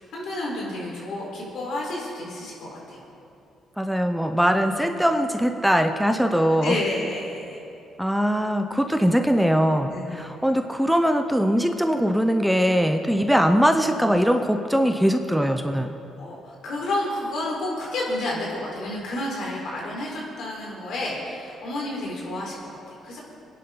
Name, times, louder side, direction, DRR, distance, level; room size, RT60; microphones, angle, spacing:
voice 1, 0.1-3.0 6.6-7.6 9.9-10.3 16.2-23.2, left 1 dB, 75° left, -3 dB, 4.3 m, -30 dB
voice 2, 3.8-6.8 8.0-15.9, equal, ahead, 6 dB, 0.8 m, -21 dB
25.0 x 10.5 x 3.9 m, 2.7 s
cardioid pair, 90°, 0 cm